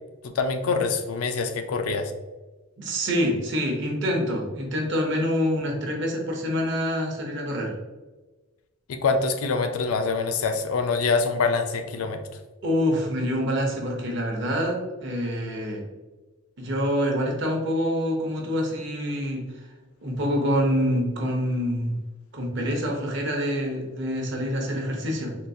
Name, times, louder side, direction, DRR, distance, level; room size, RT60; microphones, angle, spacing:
voice 1, 0.2-2.1 8.9-12.2, left 4 dB, 80° left, 7 dB, 0.4 m, -25 dB
voice 2, 2.8-7.7 12.6-15.8 16.6-19.4 20.0-21.9 22.3-25.4, equal, 55° right, 0 dB, 0.7 m, -26 dB
3.8 x 2.4 x 2.6 m, 1.2 s
head